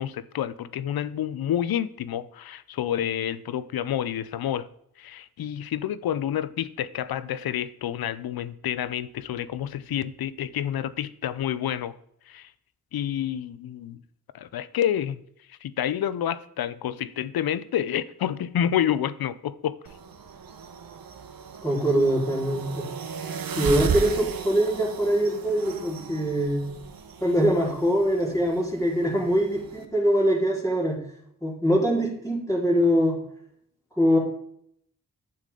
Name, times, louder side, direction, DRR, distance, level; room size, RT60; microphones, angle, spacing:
voice 1, 0.0-4.7 5.0-11.9 12.3-12.5 12.9-14.0 14.3-15.2 15.6-19.8, left 10 dB, 85° left, 0.6 m, -29 dB
sound 1, 19.8-29.8, right 6 dB, 70° right, 1.1 m, -35 dB
voice 2, 21.6-22.9 23.6-26.7 27.2-31.0 31.4-33.2 34.0-34.2, equal, 10° left, 4.3 m, -23 dB
8.4 x 8.2 x 3.8 m
cardioid pair, 45°, 36 cm